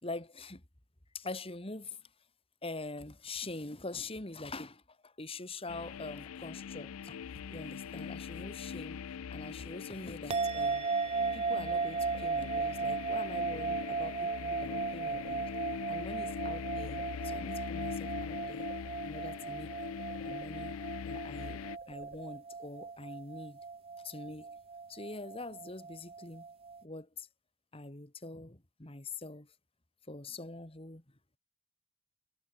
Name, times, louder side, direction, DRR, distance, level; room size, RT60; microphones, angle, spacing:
voice 1, 0.0-0.6 1.1-2.1 2.6-9.0 9.3-10.9 11.3-15.5 15.9-18.7 19.1-19.7 20.2-20.8 21.0-21.6 21.9-23.6 24.0-24.6 24.9-26.5 26.8-27.3 27.7-29.5 30.1-31.0, left 2 dB, 25° left, 2.3 m, -44 dB
sound 1, 5.7-21.8, left 6 dB, 80° left, 0.4 m, -42 dB
sound 2, 10.3-26.8, right 4 dB, 25° right, 0.6 m, -36 dB
sound 3, 11.1-13.0 14.5-15.9 16.2-17.6 17.9-19.3 19.6-21.0 21.4-22.7, right 2 dB, 45° right, 3.5 m, -57 dB
head